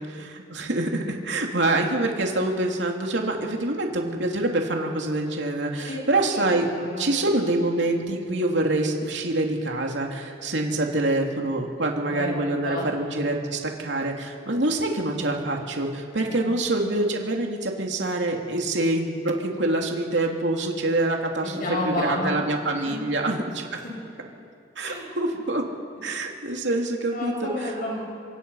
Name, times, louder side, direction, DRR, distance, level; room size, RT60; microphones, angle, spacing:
voice 1, 0.0-6.7 7.0-23.8 24.8-25.7 26.0-27.5, right 2 dB, 70° right, 1 dB, 2.9 m, -26 dB
voice 2, 6.3-7.2 12.1-12.9 13.1-13.2 16.1-16.5 21.4-22.5 22.7-23.0 23.8-23.9 24.8-25.2 27.1-28.0, left 1 dB, 50° left, -1 dB, 7.1 m, -31 dB
26.0 x 25.0 x 5.7 m, 2.4 s
head